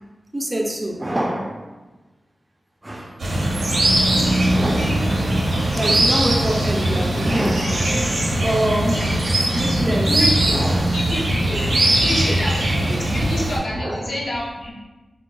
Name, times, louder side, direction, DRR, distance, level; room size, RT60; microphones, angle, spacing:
voice 1, 0.3-1.7 2.8-3.2 4.5-5.1 5.8-10.9 11.3-11.7 12.0-12.8 13.7-14.1, right 1 dB, 25° right, 1 dB, 0.4 m, -26 dB
sound 1, 3.2-13.6, right 1 dB, 85° right, 0.7 m, -20 dB
voice 2, 10.0-11.2 11.4-11.6 12.0-14.7, equal, 80° left, -6 dB, 0.9 m, -28 dB
4.5 x 2.2 x 2.3 m, 1.2 s
wide cardioid pair, 70°, 0 cm